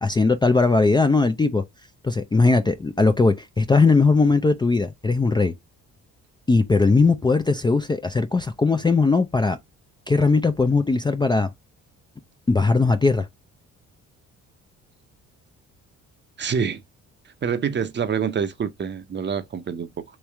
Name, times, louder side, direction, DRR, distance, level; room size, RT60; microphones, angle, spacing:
voice 1, 0.0-1.6 2.0-5.5 6.5-9.6 10.1-11.5 12.5-13.3, left 3 dB, 15° left, 0.4 m, -19 dB
voice 2, 16.4-16.8 17.4-20.0, right 6 dB, 35° right, 0.7 m, -26 dB
3.1 x 3.1 x 3.4 m
cardioid pair, 90°, 30 cm